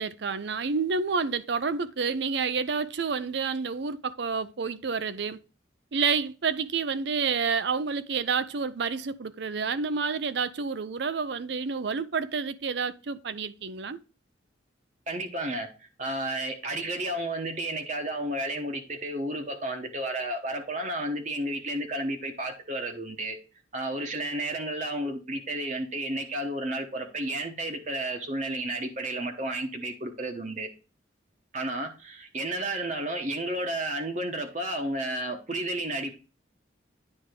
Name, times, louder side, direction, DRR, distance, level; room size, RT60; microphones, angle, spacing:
voice 1, 0.0-5.4 5.9-14.0, right 5 dB, 60° right, 0.5 m, -29 dB
voice 2, 15.1-23.4 23.7-30.7 31.5-36.1, right 1 dB, 40° right, 1.0 m, -32 dB
9.8 x 3.5 x 5.0 m
head